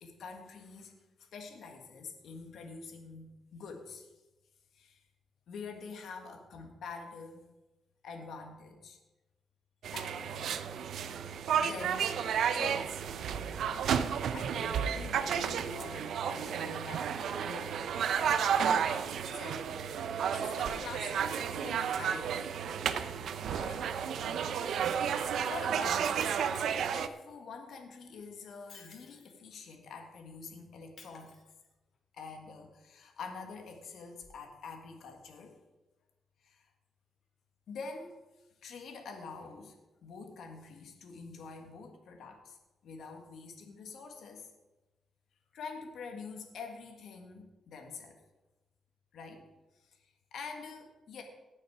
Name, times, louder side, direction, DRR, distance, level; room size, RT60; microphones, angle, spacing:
voice 1, 0.0-4.1 4.7-5.0 5.5-7.5 8.0-9.0 9.9-10.6 11.6-13.0 14.3-17.8 18.1-18.5 19.3-19.8 20.3-22.5 23.5-23.9 24.4-24.8 25.5-26.4 26.9-31.4 32.1-35.5 36.4-36.7 37.7-38.1 38.6-39.8 40.0-44.5 45.5-48.2 49.1-49.5 49.8-51.2, left 4 dB, 75° left, 3 dB, 1.8 m, -46 dB
sound 1, 9.8-27.1, right 7 dB, 75° right, 0.6 m, -32 dB
Shatter, 26.5-27.2 28.4-29.4 31.0-32.0 34.2-34.3, left 4 dB, 55° left, 2.5 m, -56 dB
18.5 x 6.5 x 4.9 m, 1.1 s
cardioid pair, 95°, 0 cm